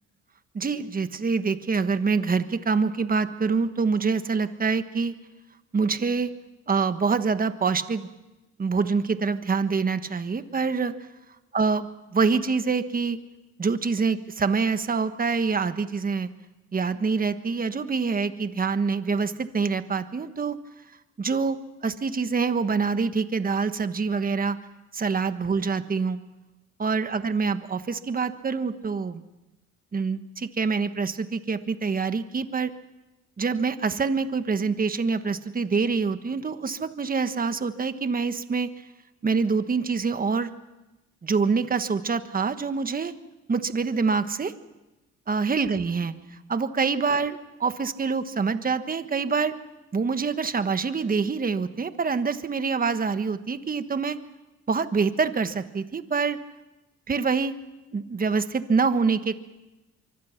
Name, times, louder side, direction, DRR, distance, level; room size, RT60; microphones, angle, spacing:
voice 1, 0.5-5.1 5.7-6.3 6.7-8.1 8.6-10.9 11.5-13.2 13.6-16.3 16.7-20.6 21.2-24.6 24.9-26.2 26.8-29.2 29.9-32.7 33.4-38.7 39.2-40.5 41.2-43.1 43.5-44.5 45.3-46.1 46.5-49.5 49.9-54.2 54.7-56.4 57.1-57.5 57.9-59.4, right 5 dB, 30° right, 10 dB, 1.3 m, -25 dB
24.5 x 24.0 x 5.9 m, 1.0 s
cardioid pair, 90°, 30 cm